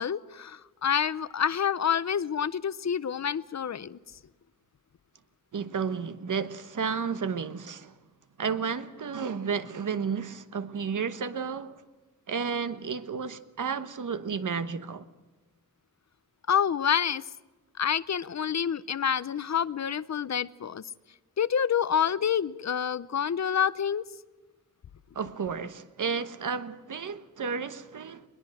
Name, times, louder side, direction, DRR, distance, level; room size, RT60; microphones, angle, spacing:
voice 1, 0.0-4.0 16.5-17.2 17.8-20.8 21.4-24.0, left 8 dB, 55° left, 0.7 m, -27 dB
voice 2, 5.5-7.9 8.4-11.8 12.3-15.1 25.1-28.2, right 6 dB, 70° right, 1.2 m, -32 dB
21.5 x 21.0 x 7.7 m
wide cardioid pair, 140°, 32 cm